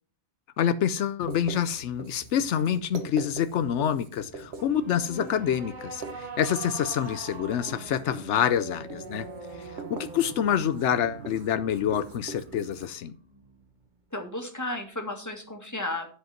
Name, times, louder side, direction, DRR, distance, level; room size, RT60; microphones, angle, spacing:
voice 1, 0.6-9.3 9.6-13.1, left 9 dB, 85° left, 13 dB, 1.0 m, -27 dB
Writing, 1.2-12.9, right 4 dB, 70° right, 1.5 m, -44 dB
sound 1, 4.5-13.9, right 3 dB, 45° right, 1.5 m, -43 dB
voice 2, 14.1-16.1, left 2 dB, 15° left, 2 dB, 2.0 m, -33 dB
10.5 x 5.3 x 5.8 m, 0.42 s
omnidirectional pair, 1.2 m